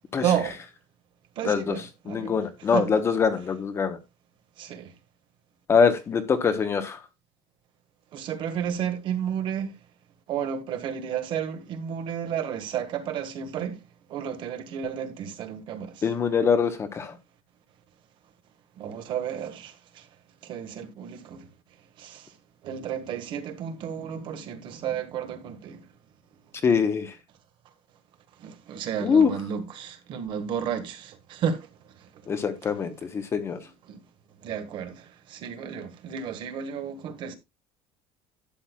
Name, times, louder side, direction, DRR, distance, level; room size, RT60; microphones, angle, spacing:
voice 1, 0.2-0.6 1.3-2.4 2.7-3.0 4.6-4.9 8.1-9.8 10.3-13.8 14.1-16.1 18.8-20.1 20.4-21.5 22.0-22.3 22.6-25.9 28.4-32.2 33.9-34.0 34.4-37.3, right 8 dB, 40° right, 1.6 m, -32 dB
voice 2, 1.4-1.7 2.1-4.0 5.7-7.0 16.0-17.1 26.6-27.1 29.0-29.3 32.3-33.6, left 6 dB, 20° left, 1.0 m, -23 dB
12.0 x 8.8 x 2.3 m
cardioid pair, 175°, 12 cm